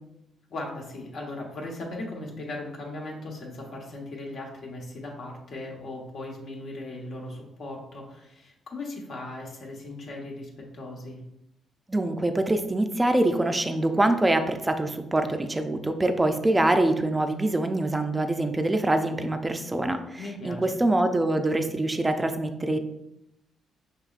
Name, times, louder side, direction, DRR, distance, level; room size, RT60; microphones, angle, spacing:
voice 1, 0.5-11.2 20.2-20.6, left 2 dB, 65° left, -1 dB, 1.1 m, -38 dB
voice 2, 11.9-22.8, right 1 dB, 15° right, 7 dB, 0.4 m, -24 dB
6.0 x 3.1 x 2.4 m, 0.83 s
cardioid pair, 90°, 0 cm